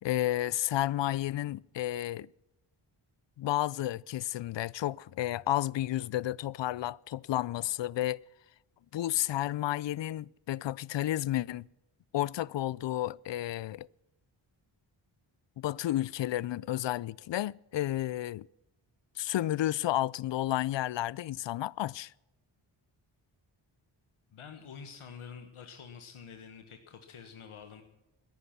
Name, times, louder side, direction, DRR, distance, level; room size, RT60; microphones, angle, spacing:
voice 1, 0.0-2.3 3.4-8.2 8.9-11.6 12.1-13.9 15.6-18.5 19.2-22.1, left 14 dB, 60° left, 0.5 m, -31 dB
voice 2, 24.3-27.8, left 6 dB, 80° left, 1.5 m, -47 dB
18.0 x 11.0 x 6.0 m
cardioid pair, 65°, 49 cm